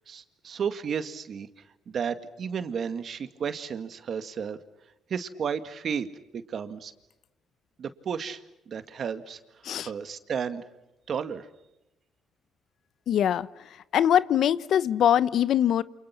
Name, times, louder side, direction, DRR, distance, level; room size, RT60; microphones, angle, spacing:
voice 1, 0.0-4.6 5.1-6.1 6.3-6.9 7.8-9.4 9.8-10.6 11.1-11.5, right 7 dB, 55° right, 10 dB, 1.9 m, -33 dB
voice 2, 13.1-13.5 13.9-15.8, left 10 dB, 70° left, 17 dB, 0.9 m, -22 dB
29.0 x 28.0 x 6.0 m, 0.93 s
cardioid pair, 90°, 0 cm